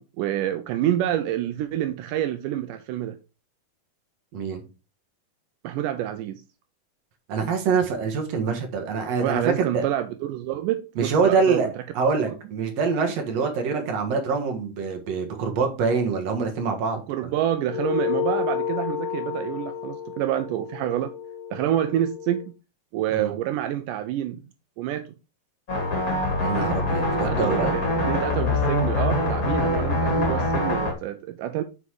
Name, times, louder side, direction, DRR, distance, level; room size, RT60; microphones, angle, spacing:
voice 1, 0.0-3.2 5.6-6.4 9.2-11.7 17.1-21.1 21.5-22.4 22.9-24.4 24.8-25.1 27.2-31.6, right 12 dB, 85° right, 1.9 m, -27 dB
voice 2, 7.3-9.9 11.0-11.7 11.9-17.3 23.1-23.3 26.4-27.7, right 5 dB, 55° right, 2.3 m, -25 dB
sound 1, 17.7-22.5, left 8 dB, 80° left, 1.7 m, -30 dB
sound 2, 25.7-30.9, left 1 dB, 35° left, 1.6 m, -24 dB
8.0 x 4.9 x 4.8 m
omnidirectional pair, 4.3 m